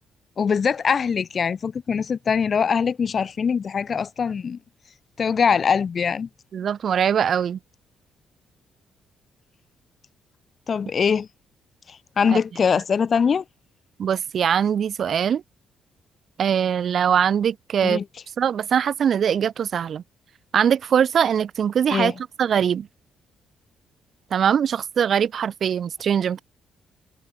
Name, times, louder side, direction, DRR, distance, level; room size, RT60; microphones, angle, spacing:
voice 1, 0.4-4.6 5.2-6.3 10.7-11.3 11.9-13.4 17.8-18.0 21.9-22.1, left 6 dB, 45° left, 2.2 m, -22 dB
voice 2, 6.5-7.6 12.3-12.4 14.0-15.4 16.4-18.0 18.4-20.0 20.5-22.1 22.4-22.9 24.3-26.4, right 8 dB, 55° right, 4.2 m, -22 dB
cardioid pair, 90°, 0 cm